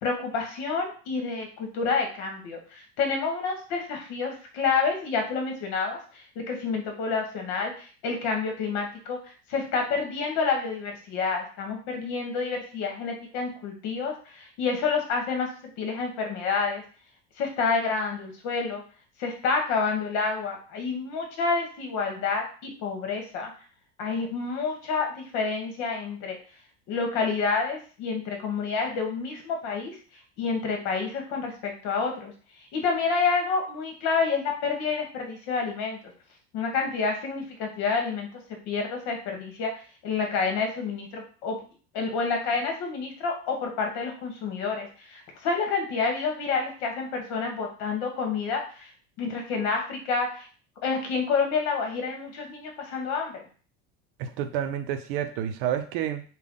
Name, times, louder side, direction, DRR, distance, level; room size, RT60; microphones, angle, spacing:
voice 1, 0.0-9.2 9.5-15.5 15.8-16.8 17.4-18.8 19.2-23.5 24.0-26.4 26.9-30.0 30.4-32.3 32.7-36.0 36.5-38.4 38.7-39.7 40.0-41.6 41.9-48.9 49.2-50.5 50.8-53.4, left 4 dB, 65° left, 2 dB, 1.2 m, -28 dB
voice 2, 54.2-56.2, right 10 dB, 70° right, 9 dB, 0.5 m, -29 dB
3.5 x 2.3 x 3.7 m, 0.39 s
supercardioid pair, 120°, 31 cm